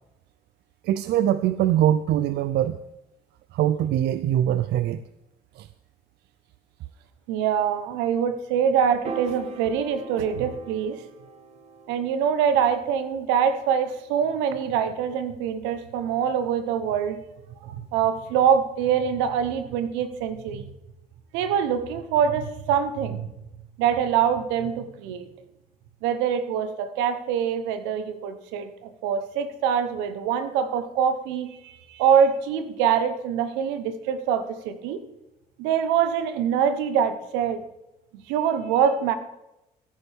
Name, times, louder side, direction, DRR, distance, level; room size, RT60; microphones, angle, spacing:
voice 1, 0.8-2.8 3.5-5.0 5.6-5.7, right 11 dB, 70° right, 13 dB, 0.5 m, -22 dB
voice 2, 7.3-11.0 11.9-17.2 17.6-20.7 21.3-23.3 23.8-25.3 26.0-35.0 35.6-37.6 38.1-39.1, right 8 dB, 90° right, 10 dB, 1.0 m, -24 dB
Piano, 9.0-15.4, right 4 dB, 35° right, 1.4 m, -42 dB
14.0 x 10.0 x 3.5 m, 0.92 s
supercardioid pair, 75°, 18 cm